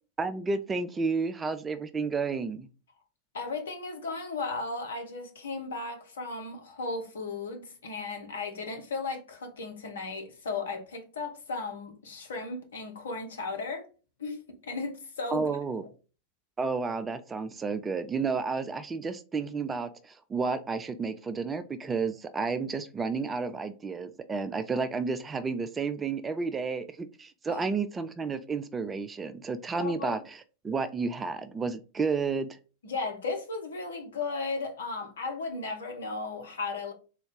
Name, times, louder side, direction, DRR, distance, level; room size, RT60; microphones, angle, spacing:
voice 1, 0.2-2.7 15.3-15.9 16.6-32.6, right 4 dB, 15° right, 0.3 m, -31 dB
voice 2, 3.3-13.8 14.2-15.5 27.5-27.6 29.8-30.2 32.8-36.9, left 3 dB, 65° left, 0.9 m, -35 dB
3.8 x 2.3 x 3.6 m
figure-of-eight pair, 90°, 0 cm